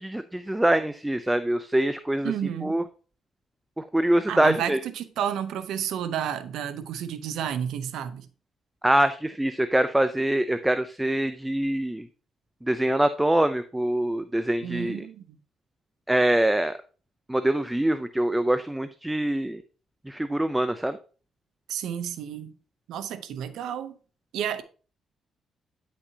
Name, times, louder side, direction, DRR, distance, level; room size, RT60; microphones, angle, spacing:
voice 1, 0.0-2.3 2.6-2.8 3.8-4.8 8.8-12.1 12.6-15.0 16.1-16.8 17.3-19.6 20.1-21.0, right 1 dB, 10° right, 0.5 m, -24 dB
voice 2, 2.2-2.8 4.3-8.3 14.6-15.4 21.7-22.5 22.9-24.0 24.3-24.6, right 9 dB, 80° right, 0.7 m, -31 dB
9.5 x 6.0 x 2.8 m
cardioid pair, 90°, 0 cm